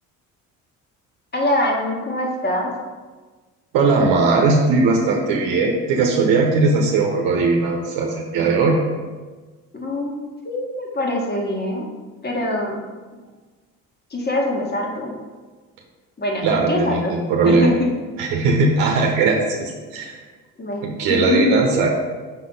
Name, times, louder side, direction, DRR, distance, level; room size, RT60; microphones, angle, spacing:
voice 1, 1.3-2.7 9.7-10.1 10.5-11.9 12.2-12.8 14.1-15.1 16.2-17.1 17.4-17.9 20.6-20.8 21.1-21.6, left 1 dB, 25° left, 0 dB, 1.7 m, -23 dB
voice 2, 3.7-8.8 16.4-17.7 18.2-20.2 20.8-21.9, right 3 dB, 70° right, 0 dB, 1.0 m, -19 dB
5.9 x 4.1 x 5.4 m, 1.4 s
supercardioid pair, 75°, 37 cm